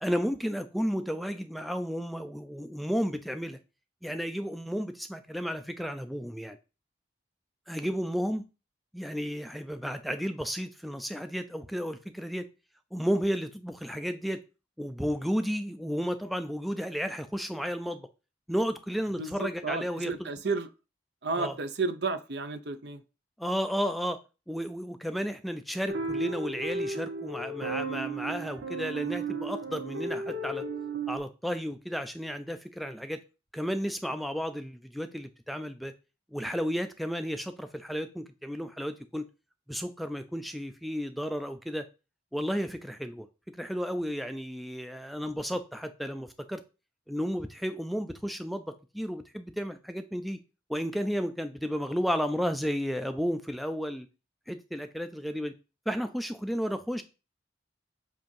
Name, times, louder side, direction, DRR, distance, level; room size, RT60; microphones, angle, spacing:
voice 1, 0.0-3.6 4.0-6.6 7.7-8.5 8.9-12.5 12.9-14.4 14.8-18.1 18.5-20.3 21.4-21.5 23.4-24.2 24.5-30.6 31.1-33.2 33.5-35.9 36.3-39.2 39.7-41.9 42.3-43.3 43.5-46.6 47.1-50.4 50.7-54.1 54.5-55.5 55.9-57.0, equal, ahead, 0.4 m, -33 dB
voice 2, 19.2-20.7 21.2-23.0, right 3 dB, 60° right, 0.7 m, -32 dB
sound 1, 25.9-31.2, right 3 dB, 90° right, 0.9 m, -34 dB
7.7 x 2.8 x 5.3 m
head